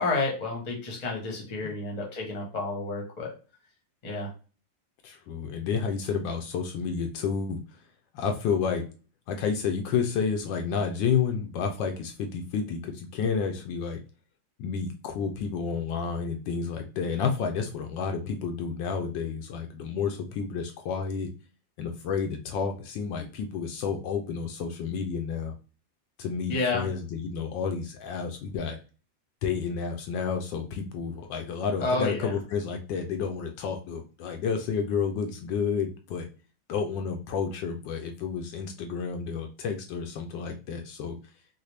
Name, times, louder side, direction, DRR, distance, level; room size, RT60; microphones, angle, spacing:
voice 1, 0.0-3.3 4.0-4.3 26.5-26.9 31.8-32.3, left 3 dB, 30° left, 0 dB, 0.8 m, -30 dB
voice 2, 5.0-7.6 8.1-8.8 9.3-14.0 14.6-21.3 21.8-25.5 26.2-28.8 29.4-36.3 36.7-41.2, left 6 dB, 75° left, 4 dB, 1.2 m, -30 dB
4.0 x 2.1 x 3.2 m, 0.36 s
omnidirectional pair, 2.1 m